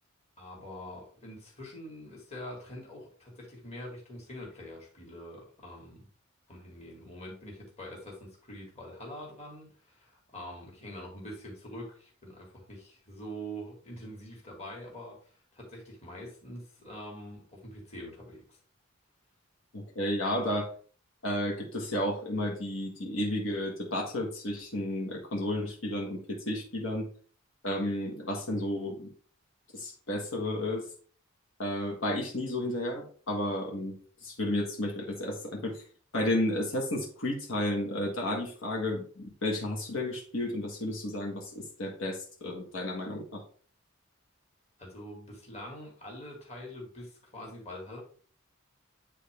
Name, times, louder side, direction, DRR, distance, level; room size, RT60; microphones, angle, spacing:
voice 1, 0.4-6.1 6.5-18.6 44.8-48.0, equal, 30° left, 2.2 m, -44 dB
voice 2, 19.7-20.7 21.2-27.1 27.6-29.1 29.7-30.9 31.6-35.8 36.1-43.4, left 1 dB, 75° left, 1.6 m, -32 dB
9.2 x 3.7 x 3.5 m
head